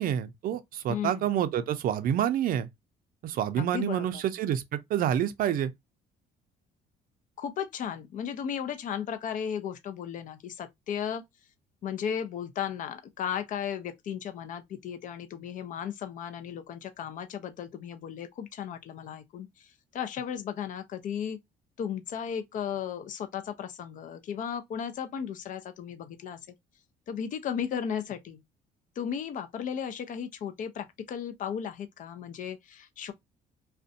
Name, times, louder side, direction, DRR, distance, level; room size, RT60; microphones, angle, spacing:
voice 1, 0.0-2.7 3.2-5.7, right 10 dB, 60° right, 0.4 m, -28 dB
voice 2, 0.9-1.3 3.6-4.2 7.4-11.2 11.8-19.7 19.9-21.4 21.8-26.4 27.1-28.4 29.0-33.1, left 8 dB, 50° left, 0.5 m, -35 dB
2.5 x 2.1 x 2.5 m
cardioid pair, 110°, 17 cm